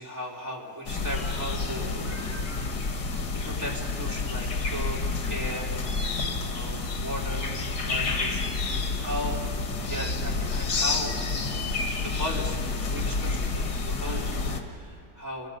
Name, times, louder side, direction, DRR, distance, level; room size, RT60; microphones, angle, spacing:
voice 1, 0.0-2.4 2.9-6.1 6.5-8.6 9.0-9.5 9.8-11.2 12.0-15.5, equal, 10° right, -4 dB, 3.0 m, -37 dB
Upper Waiakea Forest Reserve Honeycreepers, 0.9-14.6, left 3 dB, 80° left, 2.2 m, -29 dB
sound 1, 1.0-6.6, right 1 dB, 10° left, 4.6 m, -51 dB
28.5 x 19.5 x 5.4 m, 2.8 s
omnidirectional pair, 1.8 m